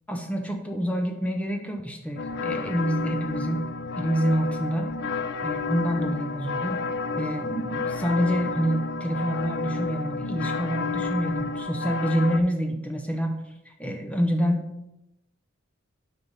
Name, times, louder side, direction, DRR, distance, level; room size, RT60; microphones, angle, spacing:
voice 1, 0.1-3.7 4.0-4.9 5.4-6.8 7.1-13.4 13.8-14.7, equal, 5° left, 3 dB, 0.8 m, -27 dB
sound 1, 2.2-12.4, left 4 dB, 50° left, 0.4 m, -31 dB
9.0 x 4.7 x 4.0 m, 0.90 s
head